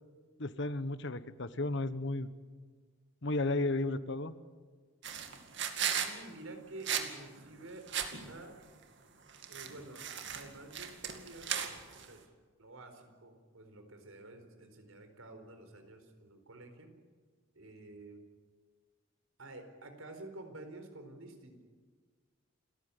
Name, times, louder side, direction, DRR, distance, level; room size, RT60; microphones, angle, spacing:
voice 1, 0.4-2.3 3.2-4.3, left 2 dB, 60° left, 13 dB, 1.2 m, -33 dB
sound 1, 5.0-6.1 6.8-7.1 7.4-7.5 7.9-8.4 9.3-12.1, right 8 dB, 60° right, 2.4 m, -36 dB
voice 2, 5.8-8.6 9.5-11.5 11.9-12.3 12.6-16.9 17.5-18.2 19.4-21.6, right 2 dB, 80° right, 6 dB, 4.4 m, -50 dB
29.5 x 14.5 x 10.0 m, 1.5 s
head